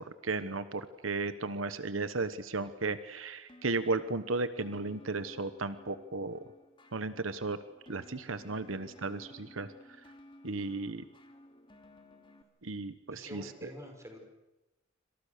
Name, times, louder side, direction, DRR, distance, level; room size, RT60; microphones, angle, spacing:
voice 1, 0.0-6.4 6.9-7.6 7.9-9.7 10.4-11.0 12.6-13.5, right 3 dB, 80° right, 12 dB, 1.1 m, -35 dB
sound 1, 3.5-12.4, left 1 dB, 25° left, 2.6 m, -56 dB
voice 2, 13.1-14.2, equal, 15° right, 4 dB, 5.5 m, -46 dB
27.5 x 26.0 x 6.7 m, 0.99 s
head